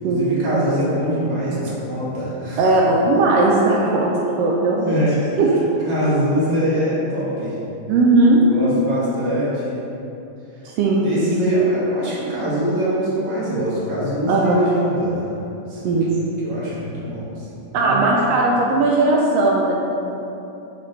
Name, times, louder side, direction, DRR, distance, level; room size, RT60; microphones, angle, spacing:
voice 1, 0.0-2.6 4.8-5.4 5.9-7.6 8.4-9.8 11.0-15.3 15.7-16.0 16.4-17.3 17.6-18.1, equal, 45° right, -9 dB, 1.9 m, -23 dB
voice 2, 2.6-5.0 5.4-5.5 7.9-8.4 10.6-11.1 14.3-14.6 15.8-16.2 17.7-19.7, right 2 dB, 85° right, -3 dB, 1.4 m, -17 dB
6.7 x 4.9 x 3.1 m, 2.9 s
omnidirectional pair, 3.4 m